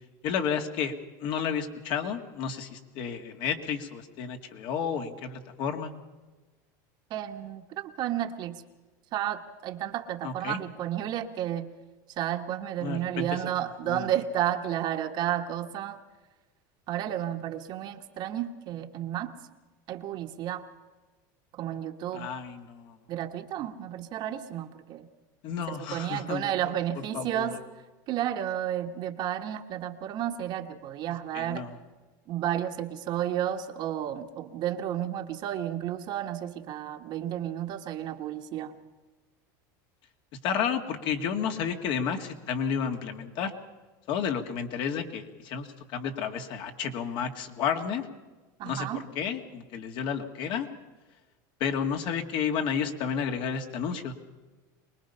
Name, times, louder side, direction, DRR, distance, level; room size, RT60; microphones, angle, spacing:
voice 1, 0.2-0.9 1.2-5.9 10.2-10.6 12.8-13.4 13.8-14.1 22.1-23.0 25.4-26.4 27.1-27.6 31.3-31.8 40.4-43.5 44.1-48.1 48.6-50.7 51.6-54.1, left 7 dB, 55° left, 5 dB, 2.1 m, -31 dB
voice 2, 7.1-8.5 9.1-11.7 12.2-16.0 16.9-19.3 19.9-20.7 21.5-22.3 23.1-25.1 25.7-27.6 28.1-31.7 32.3-38.7 48.6-49.0, right 11 dB, 45° right, 5 dB, 1.4 m, -32 dB
24.0 x 20.5 x 5.6 m, 1.3 s
supercardioid pair, 130°, 10 cm